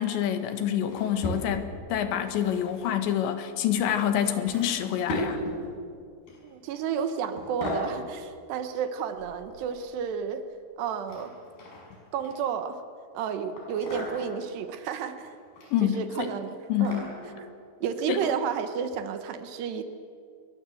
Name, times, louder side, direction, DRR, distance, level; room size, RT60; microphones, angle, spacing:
voice 1, 0.0-5.4 15.7-16.3 16.7-17.0 18.1-18.2, left 10 dB, 75° left, 8 dB, 3.7 m, -27 dB
sound 1, 0.8-1.8 2.3-2.9 3.7-3.9 4.5-5.7 6.3-6.6 6.9-7.1 7.4-7.9 9.2-10.0 11.1-12.6 13.6-14.4 15.2-15.7 16.1-17.4 18.2-18.4 18.9-19.0, left 1 dB, 55° left, 7.7 m, -37 dB
voice 2, 6.4-10.4 10.8-11.3 12.1-12.8 13.1-15.3 15.8-17.1 17.4-17.5 17.8-19.8, right 7 dB, 70° right, 9 dB, 3.1 m, -31 dB
26.5 x 22.5 x 7.8 m, 2.3 s
omnidirectional pair, 5.3 m